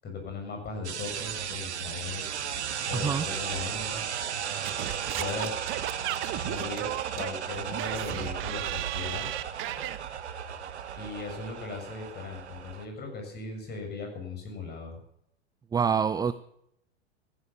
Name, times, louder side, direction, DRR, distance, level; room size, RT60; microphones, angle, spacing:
voice 1, 0.0-2.2 2.8-4.0 5.1-5.6 6.3-9.4 11.0-14.9, left 4 dB, 30° left, 3 dB, 6.9 m, -38 dB
sound 1, 0.8-12.9, right 8 dB, 80° right, 1.5 m, -35 dB
voice 2, 2.9-3.3 15.7-16.3, right 7 dB, 10° right, 14 dB, 0.5 m, -26 dB
Singing / Scratching (performance technique), 4.6-10.0, right 15 dB, 35° right, 0.9 m, -35 dB
15.0 x 11.5 x 7.2 m, 0.72 s
hypercardioid pair, 95°, 33 cm